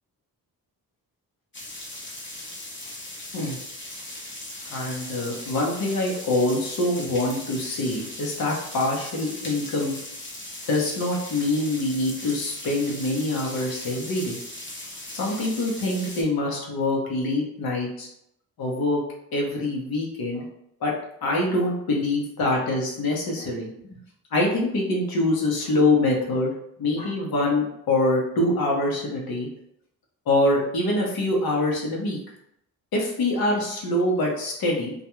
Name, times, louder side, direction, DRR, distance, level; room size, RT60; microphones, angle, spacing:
sound 1, 1.5-16.2, left 1 dB, 30° left, 0.8 m, -38 dB
voice 1, 4.6-9.9 10.7-14.4 15.1-18.1 18.6-19.0 19.3-20.5 20.8-20.9 21.2-24.0 24.3-26.5 26.8-29.5 30.3-32.2 32.9-34.9, left 2 dB, 75° left, -2 dB, 0.9 m, -25 dB
2.4 x 2.2 x 2.9 m, 0.77 s
cardioid pair, 100°, 36 cm